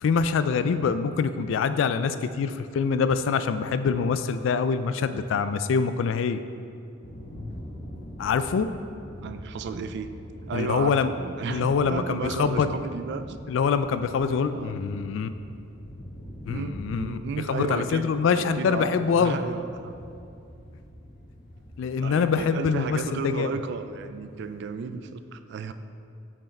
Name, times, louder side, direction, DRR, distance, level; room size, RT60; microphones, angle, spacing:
voice 1, 0.0-6.4 8.2-8.7 10.5-11.1 11.5-12.7 13.5-15.3 16.5-17.2 17.5-19.4 21.8-23.5, left 5 dB, 70° left, 11 dB, 0.3 m, -25 dB
sound 1, 7.0-24.7, equal, 45° left, 0.9 m, -44 dB
voice 2, 9.2-10.1 10.5-13.4 14.5-15.0 16.5-19.9 22.0-25.7, right 5 dB, 60° right, 10 dB, 0.3 m, -34 dB
6.1 x 4.6 x 4.4 m, 2.5 s
head